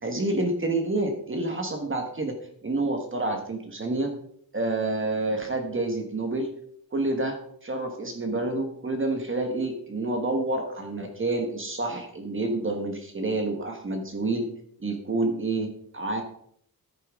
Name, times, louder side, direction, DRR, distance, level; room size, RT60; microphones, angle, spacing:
voice 1, 0.0-2.3 2.6-4.1 4.5-6.5 6.9-14.5 14.8-16.2, right 2 dB, 35° right, 4 dB, 1.4 m, -28 dB
11.0 x 9.0 x 3.6 m, 0.66 s
wide cardioid pair, 160°, 37 cm